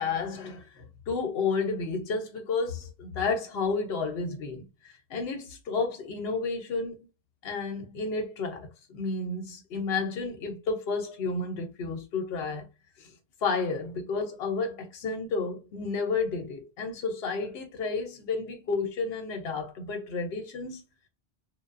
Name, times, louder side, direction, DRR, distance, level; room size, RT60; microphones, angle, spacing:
voice 1, 0.0-7.0 7.4-12.7 13.0-13.1 13.4-20.8, left 4 dB, 65° left, 0.9 m, -31 dB
2.3 x 2.3 x 2.4 m
omnidirectional pair, 1.2 m